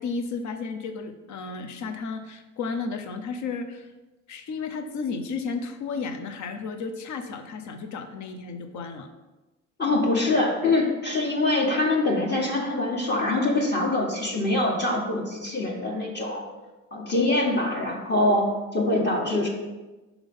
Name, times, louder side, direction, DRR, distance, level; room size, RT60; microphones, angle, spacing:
voice 1, 0.0-3.9 4.3-9.1, left 4 dB, 70° left, 7 dB, 0.8 m, -33 dB
voice 2, 9.8-16.4 16.9-19.5, left 2 dB, 35° left, -2 dB, 1.4 m, -24 dB
5.9 x 3.6 x 5.4 m, 1.1 s
cardioid pair, 90°, 30 cm